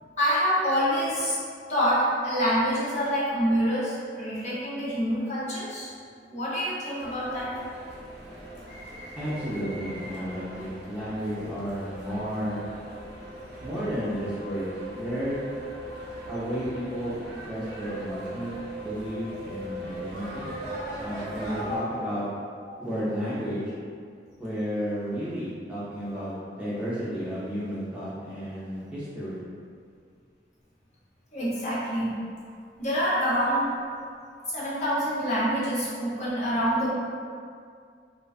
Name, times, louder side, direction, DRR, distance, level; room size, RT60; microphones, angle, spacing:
voice 1, 0.2-1.4 1.7-5.9 6.3-7.5 21.7-21.8 31.3-32.1 32.8-33.7 34.5-36.9, equal, 40° left, -8 dB, 0.6 m, -26 dB
sound 1, 7.0-21.8, right 1 dB, 85° right, 0.6 m, -39 dB
voice 2, 9.2-12.6 13.6-14.7 15.0-15.4 16.3-20.5 20.9-22.2 22.8-23.6 24.4-29.4, equal, 5° right, -11 dB, 0.4 m, -32 dB
2.4 x 2.2 x 2.3 m, 2.2 s
head